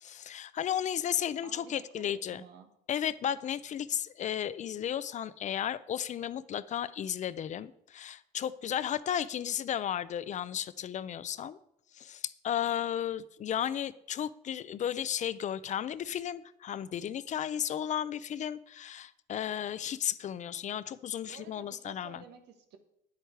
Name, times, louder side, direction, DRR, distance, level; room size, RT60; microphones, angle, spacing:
voice 1, 0.0-2.4 2.9-11.6 11.9-22.2, left 10 dB, 45° left, 17 dB, 0.5 m, -34 dB
voice 2, 1.4-2.7 21.3-22.8, right 7 dB, 80° right, 7 dB, 1.4 m, -51 dB
9.8 x 8.1 x 4.6 m, 0.75 s
cardioid pair, 110°, 17 cm